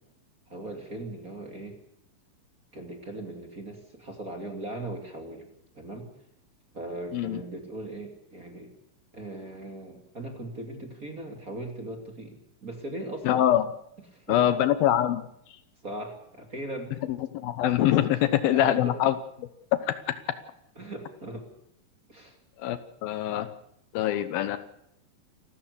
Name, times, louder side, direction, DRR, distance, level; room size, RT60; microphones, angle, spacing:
voice 1, 0.5-1.8 2.7-5.5 5.7-6.1 6.7-8.7 9.1-13.5 14.1-14.4 15.8-16.9 18.1-19.0 20.8-21.5 22.1-22.4 23.1-23.2, right 1 dB, 25° right, 4 dB, 2.8 m, -39 dB
voice 2, 13.2-13.6 14.3-15.2 17.1-19.2 19.8-20.0 22.6-23.5 23.9-24.6, left 12 dB, 75° left, 13 dB, 2.7 m, -24 dB
28.0 x 13.5 x 8.4 m, 0.77 s
omnidirectional pair, 4.4 m